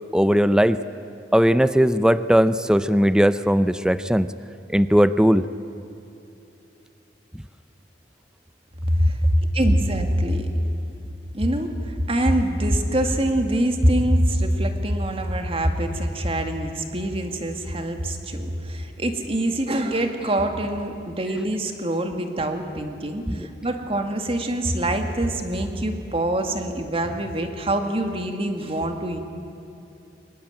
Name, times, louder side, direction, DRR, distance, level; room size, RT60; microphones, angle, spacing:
voice 1, 0.1-0.8 1.3-4.3 4.7-5.4 23.3-23.4, equal, 5° right, 13 dB, 0.5 m, -18 dB
voice 2, 9.6-10.5 11.3-29.2, right 1 dB, 35° right, 5 dB, 2.1 m, -24 dB
23.5 x 21.0 x 9.0 m, 2.8 s
head